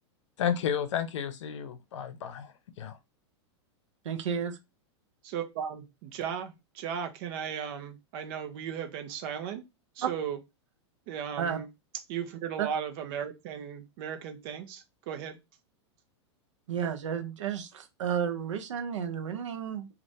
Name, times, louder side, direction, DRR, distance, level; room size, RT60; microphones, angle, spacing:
voice 1, 0.4-2.5 2.8-3.0, left 8 dB, 80° left, 0.6 m, -32 dB
voice 2, 4.0-4.6 11.4-11.6 12.6-12.7 16.7-19.9, right 8 dB, 85° right, 0.6 m, -32 dB
voice 3, 5.2-9.6 10.0-10.4 11.1-11.7 12.1-15.4, right 8 dB, 50° right, 0.7 m, -36 dB
2.6 x 2.5 x 3.2 m
hypercardioid pair, 135°, 15 cm